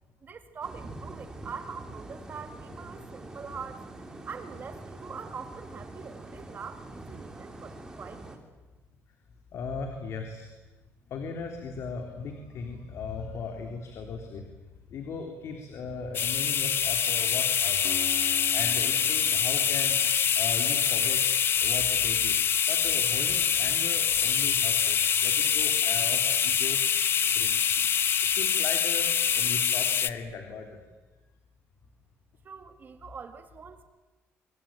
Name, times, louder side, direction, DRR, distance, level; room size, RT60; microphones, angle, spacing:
voice 1, 0.2-3.9 4.2-8.4 32.4-33.8, right 6 dB, 35° right, 8 dB, 1.9 m, -43 dB
sound 1, 0.6-8.4, right 2 dB, 15° right, 3.7 m, -44 dB
voice 2, 9.5-10.5 11.1-14.5 14.9-18.0 18.5-20.0 20.4-21.2 21.6-22.4 22.7-26.8 27.3-28.0 28.3-30.9, left 4 dB, 65° left, 4 dB, 3.5 m, -38 dB
sound 2, 16.1-30.1, left 8 dB, 45° left, 0.9 m, -25 dB
Acoustic guitar, 17.8-21.4, left 5 dB, 90° left, 4.6 m, -45 dB
25.0 x 25.0 x 9.0 m, 1.2 s
cardioid pair, 150°, 5 cm